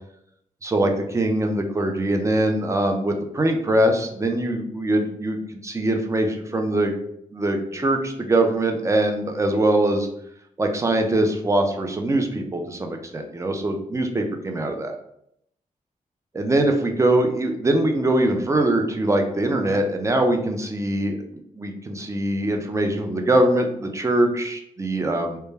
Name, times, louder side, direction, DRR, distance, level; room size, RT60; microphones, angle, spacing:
voice 1, 0.6-7.0 7.3-10.1 10.6-15.0 16.3-21.2 21.6-25.4, right 1 dB, 20° right, 4 dB, 0.4 m, -22 dB
2.1 x 2.1 x 3.2 m, 0.73 s
cardioid pair, 85°, 15 cm